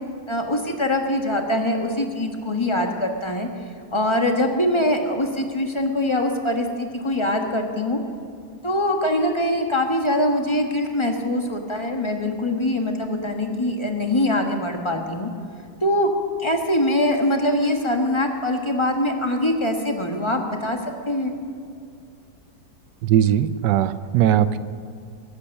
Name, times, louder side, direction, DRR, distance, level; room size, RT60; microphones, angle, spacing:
voice 1, 0.3-3.5 3.9-8.0 8.6-15.3 15.8-16.1 16.4-20.8 21.1-21.3, left 1 dB, 20° left, 3 dB, 1.2 m, -23 dB
voice 2, 23.0-24.6, right 10 dB, 90° right, 14 dB, 1.3 m, -19 dB
22.0 x 8.5 x 6.5 m, 2.3 s
omnidirectional pair, 1.8 m